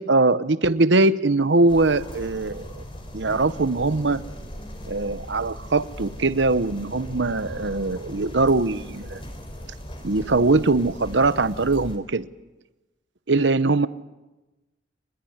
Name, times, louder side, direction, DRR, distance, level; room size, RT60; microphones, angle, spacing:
voice 1, 0.0-2.7 3.1-4.2 4.8-9.2 10.0-12.3 13.3-13.9, right 3 dB, 65° right, 14 dB, 0.9 m, -21 dB
sound 1, 1.7-12.0, equal, 30° left, 4.5 m, -38 dB
26.0 x 21.5 x 9.6 m, 1.1 s
head